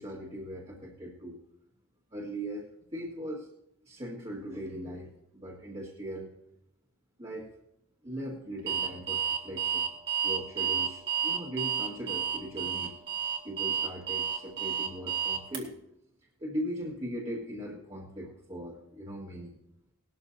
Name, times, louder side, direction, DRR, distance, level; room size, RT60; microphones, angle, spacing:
voice 1, 0.0-1.4 2.1-2.6 2.9-3.5 3.8-6.3 7.2-7.5 8.0-9.9 10.2-12.9 13.4-15.7 16.4-19.5, equal, 25° right, -7 dB, 1.8 m, -39 dB
Alarm, 8.7-15.6, right 8 dB, 45° right, 1.8 m, -30 dB
19.0 x 13.0 x 2.8 m, 0.78 s
head